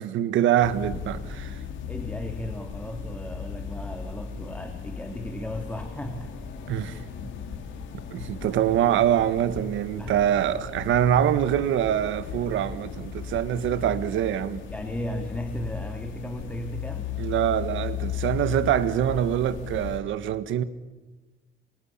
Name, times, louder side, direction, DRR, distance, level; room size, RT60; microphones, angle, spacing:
voice 1, 0.0-1.6 6.7-7.0 8.1-14.6 17.2-20.6, right 10 dB, 75° right, 1.5 m, -24 dB
sound 1, 0.6-20.0, left 7 dB, 70° left, 4.7 m, -36 dB
voice 2, 1.9-6.3 10.0-10.2 12.3-12.5 14.7-17.1, equal, 5° left, 2.7 m, -35 dB
27.5 x 24.5 x 8.6 m
cardioid pair, 130°, 20 cm